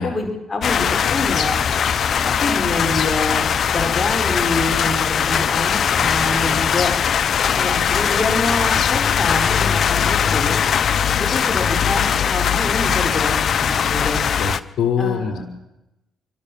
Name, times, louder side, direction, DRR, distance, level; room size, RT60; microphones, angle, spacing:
voice 1, 0.0-1.6 2.2-3.4 3.7-6.9 7.5-10.6 11.2-14.2 15.0-15.4, left 2 dB, 30° left, 3 dB, 4.9 m, -26 dB
sound 1, 0.6-14.6, left 8 dB, 55° left, 0.8 m, -20 dB
voice 2, 14.4-15.4, left 6 dB, 70° left, 7 dB, 1.8 m, -23 dB
29.0 x 12.0 x 7.3 m, 0.93 s
cardioid pair, 90°, 0 cm